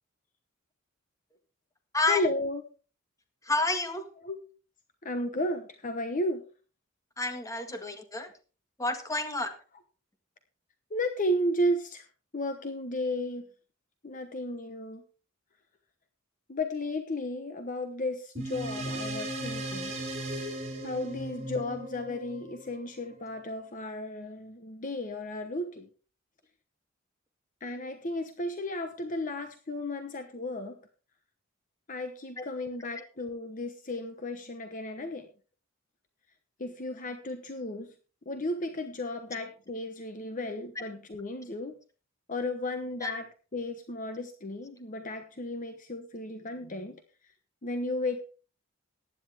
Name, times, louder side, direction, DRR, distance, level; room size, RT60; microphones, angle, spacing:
voice 1, 2.1-2.6 4.2-4.4 5.0-6.4 10.9-12.0 12.3-13.5 14.0-15.0 16.5-19.9 20.8-25.9 27.6-30.8 31.9-35.3 36.6-37.9 38.3-41.7 42.3-43.2 43.5-47.0 47.6-48.2, left 1 dB, 40° left, 8 dB, 1.1 m, -34 dB
voice 2, 3.4-4.1 7.2-8.3 8.8-9.5 32.4-32.5 43.0-43.1, left 2 dB, 15° left, 6 dB, 1.8 m, -29 dB
sound 1, 18.4-23.2, right 1 dB, 35° right, 5.6 m, -37 dB
15.5 x 10.5 x 3.5 m, 0.36 s
head